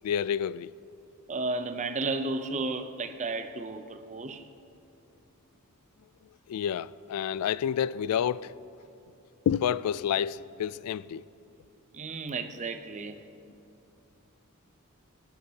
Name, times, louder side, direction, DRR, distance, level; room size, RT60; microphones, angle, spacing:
voice 1, 0.0-0.7 6.5-8.5 9.5-11.2, left 9 dB, 85° left, 0.3 m, -29 dB
voice 2, 1.3-4.5 11.9-13.2, right 3 dB, 35° right, 0.6 m, -33 dB
24.0 x 11.5 x 2.8 m
head